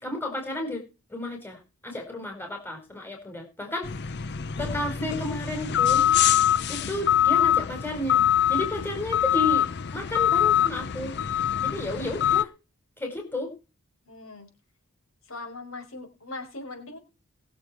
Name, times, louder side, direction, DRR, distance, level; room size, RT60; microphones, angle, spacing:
voice 1, 0.0-0.8 1.1-3.9 4.6-6.1 6.7-8.2 8.5-11.1 11.6-12.5 13.0-13.5, left 1 dB, 10° left, 2 dB, 4.8 m, -32 dB
sound 1, 3.8-12.4, left 10 dB, 50° left, 0.6 m, -24 dB
voice 2, 14.1-14.5 15.2-17.0, left 2 dB, 65° left, 4 dB, 5.3 m, -40 dB
21.5 x 7.6 x 4.5 m, 0.30 s
head